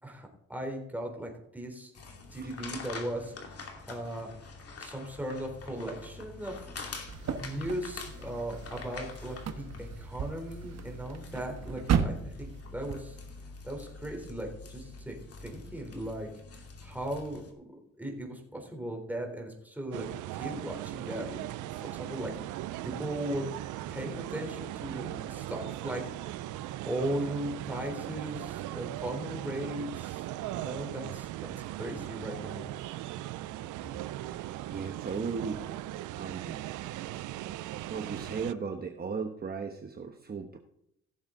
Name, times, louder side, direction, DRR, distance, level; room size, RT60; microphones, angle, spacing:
voice 1, 0.0-1.9 2.3-3.6 3.9-4.3 4.8-6.6 7.4-13.2 13.6-16.3 16.5-17.4 18.0-20.1 20.3-23.4 23.9-26.0 26.9-32.7, right 1 dB, 5° right, 1 dB, 3.6 m, -38 dB
sound 1, 1.9-17.5, left 4 dB, 50° left, 2.6 m, -45 dB
sound 2, 7.1-13.0, right 7 dB, 60° right, 1.3 m, -35 dB
sound 3, 19.9-38.5, right 14 dB, 85° right, 0.6 m, -39 dB
voice 2, 34.6-35.6 36.2-36.6 37.9-40.6, right 5 dB, 30° right, 5 dB, 1.1 m, -36 dB
16.5 x 7.2 x 3.8 m, 0.77 s
cardioid pair, 90°, 30 cm